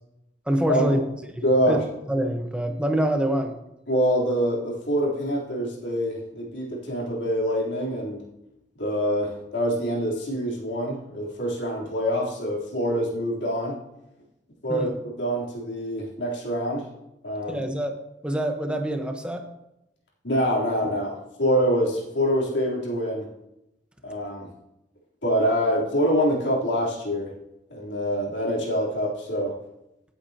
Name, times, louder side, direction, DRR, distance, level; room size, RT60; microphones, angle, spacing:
voice 1, 0.5-1.0 1.4-1.8 2.1-3.5 14.7-14.9 17.5-18.0 18.2-19.5, right 1 dB, 5° right, 4 dB, 1.1 m, -25 dB
voice 2, 1.4-1.8 3.9-8.2 8.8-13.8 14.6-16.8 17.2-17.6 20.2-23.3 24.0-24.5 25.2-27.3 27.7-29.5, equal, 85° left, -4 dB, 3.6 m, -25 dB
16.0 x 8.4 x 2.9 m, 0.86 s
head